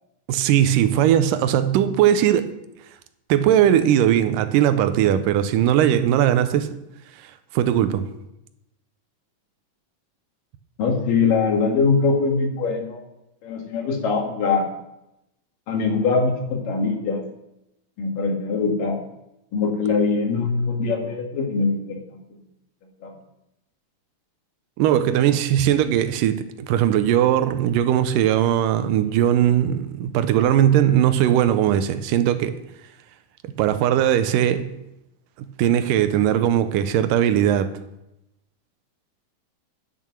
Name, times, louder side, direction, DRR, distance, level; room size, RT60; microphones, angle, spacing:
voice 1, 0.3-2.5 3.3-6.8 7.5-8.1 24.8-32.6 33.4-34.7 35.4-37.7, right 10 dB, 85° right, 2.3 m, -19 dB
voice 2, 10.8-13.0 13.4-14.7 15.7-17.2 18.0-19.0 19.5-22.4 23.0-23.1, left 4 dB, 85° left, 3.4 m, -22 dB
10.0 x 7.5 x 6.1 m
omnidirectional pair, 3.7 m